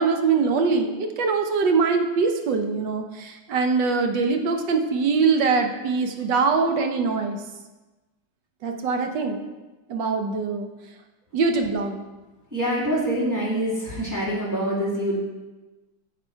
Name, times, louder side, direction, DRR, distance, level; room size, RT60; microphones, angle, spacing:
voice 1, 0.0-7.4 8.6-9.4 9.9-10.7 11.3-12.0, right 4 dB, 75° right, 4 dB, 1.6 m, -23 dB
voice 2, 12.5-15.2, equal, 10° right, -7 dB, 2.5 m, -25 dB
9.7 x 7.3 x 4.6 m, 1.1 s
omnidirectional pair, 2.0 m